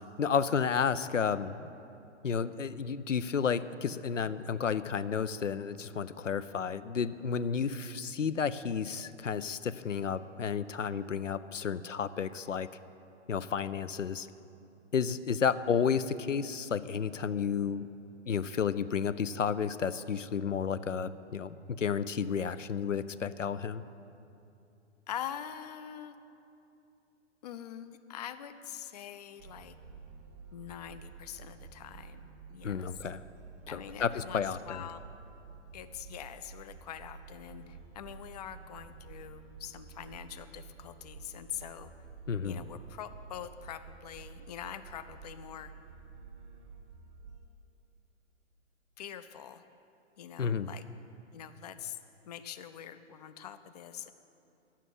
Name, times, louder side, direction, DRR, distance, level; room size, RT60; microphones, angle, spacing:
voice 1, 0.2-1.7 2.2-12.7 13.3-14.3 14.9-17.9 18.3-23.8 32.6-33.2 33.7-34.8 42.3-42.6 50.4-50.7, left 6 dB, 85° left, 14 dB, 0.5 m, -32 dB
voice 2, 25.1-26.1 27.4-29.8 30.5-33.0 33.7-35.0 35.7-41.9 42.4-45.7 49.0-49.6 50.2-50.8 51.3-52.0 52.3-54.1, left 10 dB, 35° left, 10 dB, 0.4 m, -44 dB
sound 1, 29.4-47.5, right 5 dB, 20° right, 0.7 m, -51 dB
9.9 x 7.4 x 9.1 m, 2.7 s
figure-of-eight pair, 120°, 37 cm